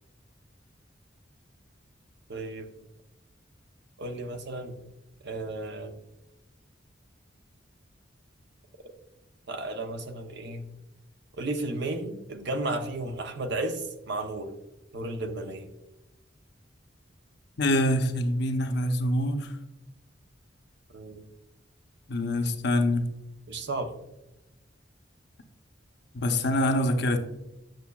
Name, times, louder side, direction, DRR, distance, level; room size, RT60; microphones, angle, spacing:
voice 1, 2.3-2.7 4.0-4.8 5.2-6.0 8.8-8.9 9.5-10.7 11.4-14.5 14.9-15.7 20.9-21.2 23.5-23.9, right 2 dB, 65° right, 0.8 m, -33 dB
voice 2, 17.6-19.5 22.1-23.1 26.1-27.2, left 1 dB, 65° left, 0.8 m, -25 dB
9.0 x 6.5 x 2.4 m
head